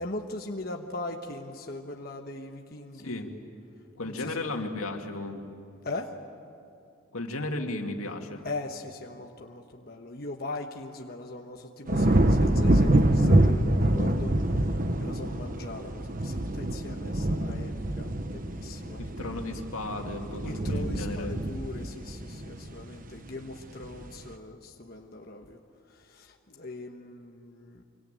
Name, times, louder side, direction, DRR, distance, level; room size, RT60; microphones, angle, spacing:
voice 1, 0.0-3.2 4.0-4.4 5.8-6.2 8.4-19.1 20.4-25.6 25.9-27.8, left 2 dB, 45° left, 2 dB, 1.3 m, -40 dB
voice 2, 4.0-5.4 7.1-8.4 19.0-21.4, left 2 dB, 85° left, 3 dB, 2.5 m, -34 dB
sound 1, 11.9-23.2 23.6-24.1, right 1 dB, 40° right, 1.1 m, -26 dB
25.5 x 24.0 x 9.1 m, 2.5 s
head